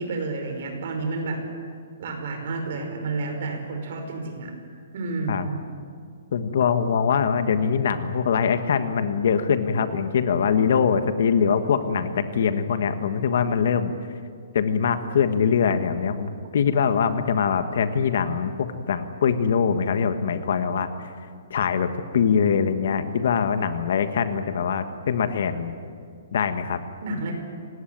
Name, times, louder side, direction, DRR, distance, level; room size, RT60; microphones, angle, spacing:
voice 1, 0.0-1.4 2.0-4.5 4.9-5.5 27.0-27.3, right 3 dB, 40° right, 4 dB, 5.0 m, -30 dB
voice 2, 6.3-13.9 14.5-21.1 21.5-21.9 22.1-25.8 26.3-26.8, left 6 dB, 50° left, 10 dB, 1.5 m, -23 dB
26.0 x 19.5 x 9.3 m, 2.3 s
hypercardioid pair, 180°, 0 cm